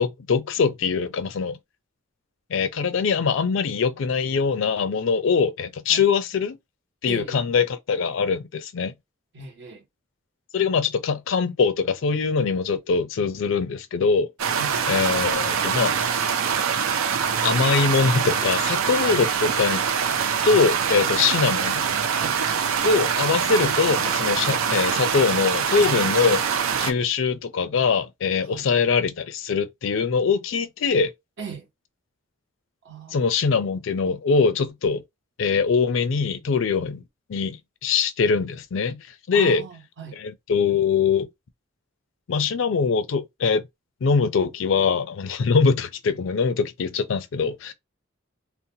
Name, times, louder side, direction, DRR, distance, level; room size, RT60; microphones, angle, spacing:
voice 1, 0.0-1.6 2.5-6.6 7.0-8.9 10.5-14.3 14.9-15.9 17.4-19.9 20.4-21.8 22.8-26.4 26.8-31.1 33.1-35.0 35.4-37.0 37.3-37.6 37.8-39.6 40.2-41.3 42.3-43.7 44.0-47.7, left 5 dB, 65° left, 0.4 m, -22 dB
voice 2, 7.1-7.4 9.3-9.9 14.5-14.8 21.1-21.3 22.2-22.4 28.4-28.7 31.4-31.7 32.8-33.2 36.8-36.9 39.3-40.2, right 5 dB, 60° right, 0.9 m, -38 dB
sound 1, 14.4-26.9, right 7 dB, 85° right, 0.4 m, -24 dB
2.6 x 2.1 x 2.7 m
head